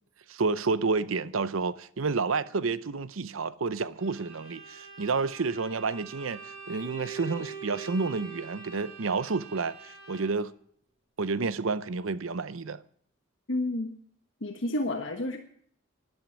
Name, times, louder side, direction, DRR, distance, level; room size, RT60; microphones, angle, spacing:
voice 1, 0.3-10.5 11.2-12.8, right 4 dB, 85° right, 0.7 m, -30 dB
Bowed string instrument, 4.0-10.5, right 5 dB, 15° right, 7.4 m, -44 dB
voice 2, 13.5-13.9 14.4-15.4, left 1 dB, 65° left, 1.4 m, -30 dB
12.0 x 11.0 x 7.4 m
head